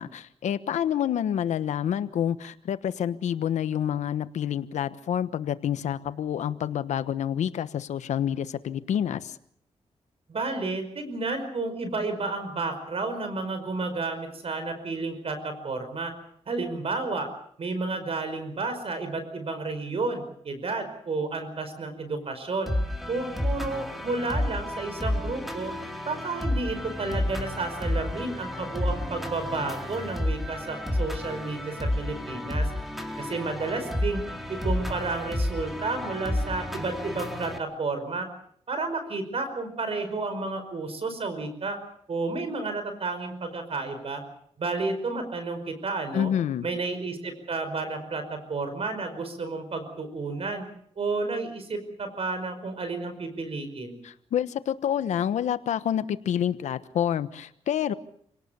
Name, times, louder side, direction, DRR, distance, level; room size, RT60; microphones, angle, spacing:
voice 1, 0.0-9.4 46.1-46.7 54.0-57.9, left 9 dB, 90° left, 13 dB, 1.2 m, -28 dB
voice 2, 10.3-16.1 16.5-17.3 17.6-22.7 23.1-25.7 26.0-32.7 33.2-34.2 34.5-38.3 38.7-41.8 42.1-44.2 44.6-46.3 46.6-50.7 51.0-54.0, right 3 dB, 55° right, 8 dB, 5.2 m, -31 dB
sound 1, 22.7-37.6, left 1 dB, ahead, 4.5 m, -31 dB
28.5 x 18.5 x 7.0 m, 0.67 s
cardioid pair, 70°, 12 cm